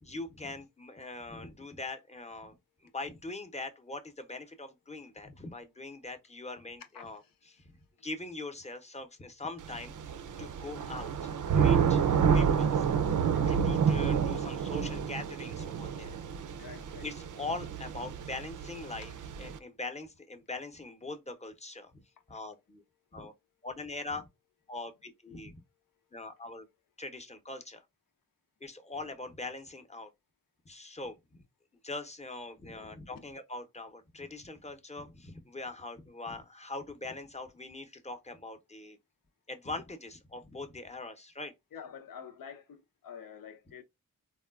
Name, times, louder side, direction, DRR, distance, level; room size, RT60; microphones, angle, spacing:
voice 1, 0.0-2.6 2.9-7.2 7.5-7.7 8.0-9.9 10.4-11.1 11.5-12.1 12.3-12.9 13.5-16.2 17.0-22.0 22.3-22.8 23.1-23.3 23.6-24.3 24.7-25.6 26.1-26.7 27.0-27.8 28.6-30.1 30.7-31.4 31.8-39.0 39.5-41.5, left 2 dB, 20° left, 0.7 m, -42 dB
Thunder / Rain, 9.6-19.6, right 7 dB, 65° right, 0.5 m, -29 dB
voice 2, 16.6-17.1 41.7-43.8, left 7 dB, 85° left, 0.7 m, -47 dB
3.5 x 2.2 x 2.3 m
cardioid pair, 45°, 33 cm